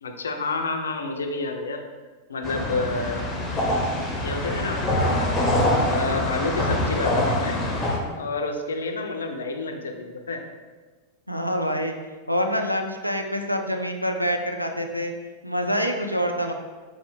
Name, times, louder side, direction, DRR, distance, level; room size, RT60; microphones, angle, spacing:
voice 1, 0.0-1.8 2.3-3.2 4.2-7.6 8.2-10.4, left 3 dB, 70° left, 4 dB, 0.4 m, -29 dB
sound 1, 2.4-8.0, left 1 dB, 20° left, 0.6 m, -24 dB
voice 2, 11.3-11.9 12.3-15.1 15.4-16.5, equal, 90° right, 4 dB, 0.3 m, -26 dB
4.6 x 2.0 x 3.2 m, 1.4 s
figure-of-eight pair, 90°, 0 cm